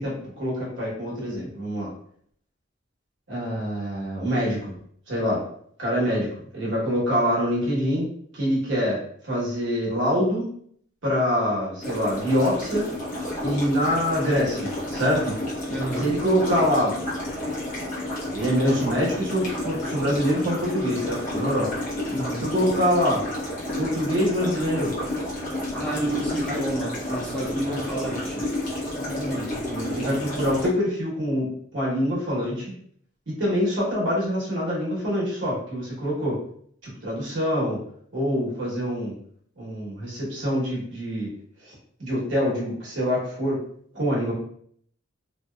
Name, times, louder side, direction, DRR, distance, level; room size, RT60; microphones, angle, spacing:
voice 1, 0.0-1.9 3.3-4.7 5.1-5.4 5.8-8.1 8.3-10.5 11.0-12.9 13.4-15.4 16.0-16.9 18.3-21.7 22.4-23.2 23.8-24.9 26.5-26.6 27.7-27.8 29.0-32.7 33.3-36.3 36.8-37.8 38.1-39.1 39.6-41.3 41.6-41.7 42.0-43.6 43.9-44.3, equal, 70° right, -5 dB, 1.1 m, -25 dB
sound 1, 11.8-30.7, left 1 dB, 40° left, 0.8 m, -31 dB
voice 2, 15.7-16.2 22.1-22.5 25.7-28.5, right 1 dB, 5° left, -5 dB, 0.5 m, -30 dB
2.6 x 2.2 x 2.2 m, 0.63 s
head